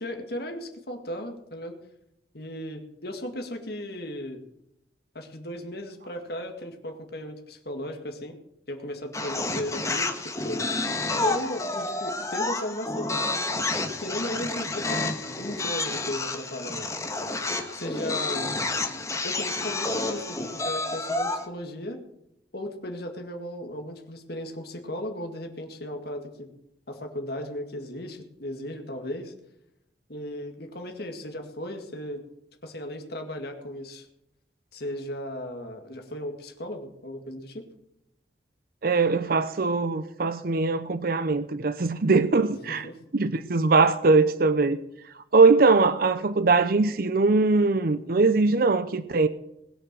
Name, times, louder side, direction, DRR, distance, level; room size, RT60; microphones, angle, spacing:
voice 1, 0.0-1.8 2.3-4.4 5.1-8.4 8.7-10.6 11.2-13.3 14.0-17.3 17.7-18.5 19.2-22.0 22.5-26.5 26.9-29.3 30.1-32.3 32.6-34.1 34.7-37.7 42.7-43.0, left 1 dB, 60° left, 2.1 m, -36 dB
sound 1, 9.1-21.5, left 2 dB, 15° left, 1.4 m, -29 dB
voice 2, 38.8-42.9 43.1-44.8 45.3-49.3, right 3 dB, 55° right, 0.6 m, -21 dB
20.5 x 6.8 x 7.5 m
head